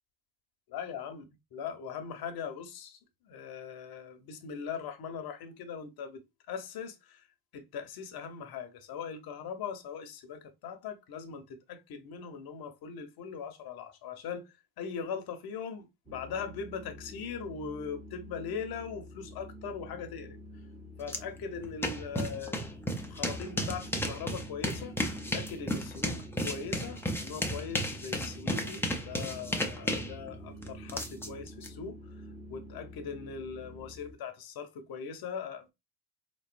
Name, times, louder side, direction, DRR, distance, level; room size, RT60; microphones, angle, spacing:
voice 1, 0.7-3.0 3.2-7.3 7.5-20.4 21.0-22.8 23.1-25.0 25.3-35.7, left 6 dB, 50° left, 1.1 m, -40 dB
sound 1, 16.1-34.1, equal, 15° right, 1.5 m, -49 dB
sound 2, 21.1-21.2 21.5-31.7, left 1 dB, 5° left, 0.8 m, -34 dB
4.0 x 3.1 x 2.5 m
supercardioid pair, 80°, 45 cm